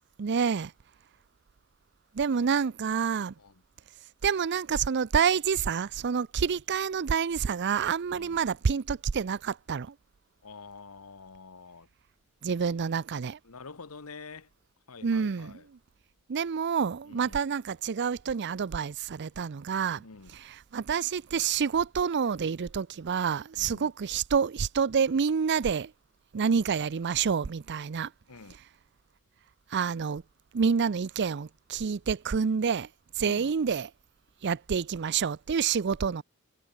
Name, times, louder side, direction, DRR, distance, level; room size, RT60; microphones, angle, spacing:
voice 1, 0.2-0.7 2.1-3.3 4.2-9.9 12.4-13.4 15.0-15.6 16.3-20.0 20.3-25.9 26.3-28.1 29.7-30.2 30.5-32.9 33.2-33.9 34.4-36.2, right 6 dB, 50° right, 0.5 m, -28 dB
voice 2, 8.1-8.4 10.4-11.9 13.4-14.5 14.9-15.7 17.0-17.4 20.0-20.3 23.5-23.9 28.3-28.5 33.2-33.5, left 4 dB, 75° left, 1.2 m, -47 dB
head